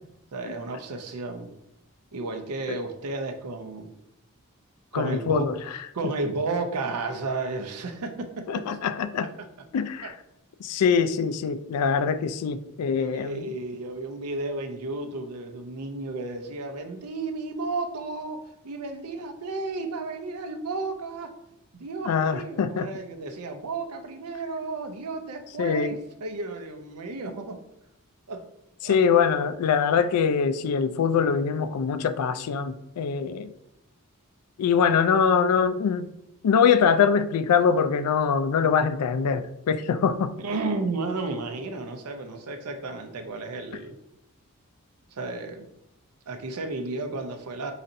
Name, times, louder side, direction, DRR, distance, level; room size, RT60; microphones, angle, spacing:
voice 1, 0.3-1.5 2.1-3.9 4.9-5.4 5.9-8.7 10.0-10.1 12.9-21.3 21.7-27.6 28.3-28.4 28.8-29.0 40.4-44.0 45.1-45.7 46.3-47.7, right 3 dB, 90° right, 5 dB, 0.6 m, -33 dB
voice 2, 4.9-5.6 8.5-9.3 9.7-10.1 10.6-13.5 22.1-22.9 25.6-25.9 28.8-33.5 34.6-36.1 36.4-40.3, left 6 dB, 85° left, 12 dB, 0.4 m, -23 dB
4.2 x 4.0 x 2.6 m, 0.83 s
head